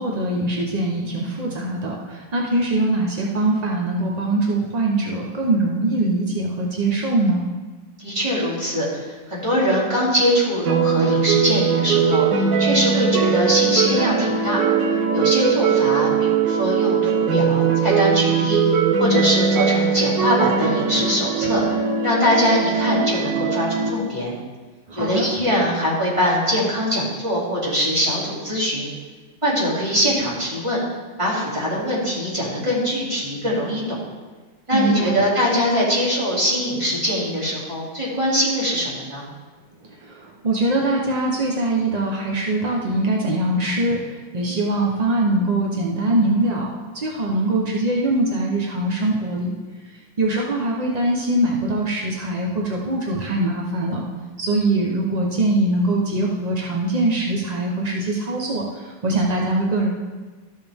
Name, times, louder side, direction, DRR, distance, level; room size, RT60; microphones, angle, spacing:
voice 1, 0.0-7.4 24.9-25.3 34.7-35.2 40.0-46.6 46.9-49.5 50.2-54.0 54.4-59.9, right 2 dB, 45° right, -1 dB, 0.5 m, -22 dB
voice 2, 8.0-14.6 15.1-24.3 24.9-28.9 29.4-30.8 31.2-34.0 34.7-39.3, equal, 15° right, -7 dB, 2.8 m, -22 dB
sound 1, 10.6-23.9, right 6 dB, 70° right, 1.5 m, -20 dB
13.0 x 6.6 x 3.5 m, 1.3 s
omnidirectional pair, 2.0 m